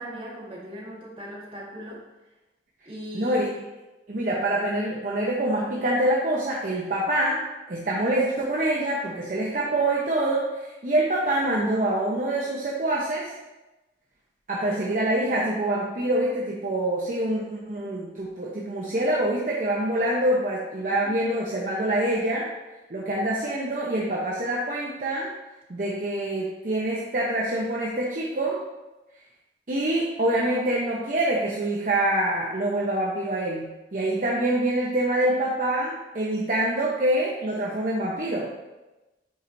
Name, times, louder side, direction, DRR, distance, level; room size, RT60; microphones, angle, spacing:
voice 1, 0.0-2.0 2.8-3.5 14.5-15.6 20.9-21.1, equal, 30° right, -6 dB, 1.6 m, -39 dB
voice 2, 3.1-3.5 4.1-7.4 7.7-13.3 14.5-22.5 22.9-25.3 25.7-28.6 29.7-38.5, right 1 dB, 45° right, -4 dB, 0.7 m, -25 dB
8.3 x 4.4 x 2.6 m, 1.1 s
head